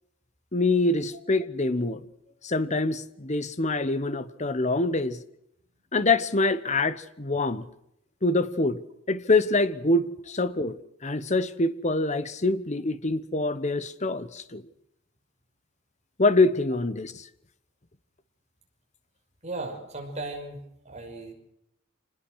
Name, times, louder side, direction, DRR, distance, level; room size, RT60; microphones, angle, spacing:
voice 1, 0.5-2.0 2.4-5.2 5.9-7.7 8.2-8.8 9.1-10.8 11.0-14.6 16.2-17.3, left 2 dB, 35° left, 1.2 m, -25 dB
voice 2, 19.4-21.3, right 2 dB, 35° right, 5.8 m, -36 dB
26.0 x 20.5 x 6.4 m
head